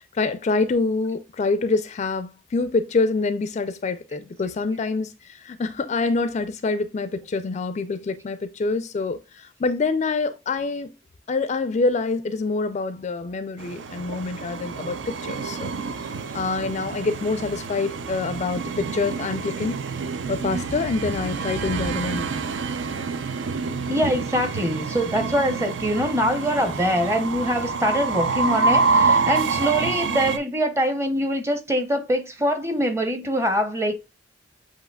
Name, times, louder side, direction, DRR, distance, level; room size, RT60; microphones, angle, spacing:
voice 1, 0.1-10.9 11.3-15.7 16.3-22.3, left 3 dB, 40° left, 0.3 m, -26 dB
Train, 13.6-30.4, right 4 dB, 75° right, 0.5 m, -27 dB
voice 2, 23.9-33.9, equal, 15° right, 0.7 m, -23 dB
7.7 x 2.9 x 2.2 m
head